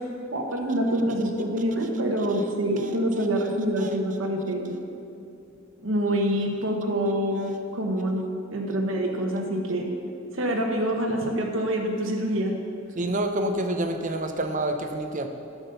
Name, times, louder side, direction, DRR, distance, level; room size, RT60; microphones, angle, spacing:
voice 1, 0.3-4.7 5.8-8.2 8.5-9.9 10.3-12.5, right 1 dB, 80° right, 1 dB, 1.1 m, -26 dB
voice 2, 13.0-15.3, right 1 dB, 40° right, 6 dB, 0.7 m, -27 dB
11.5 x 6.1 x 6.8 m, 2.6 s
head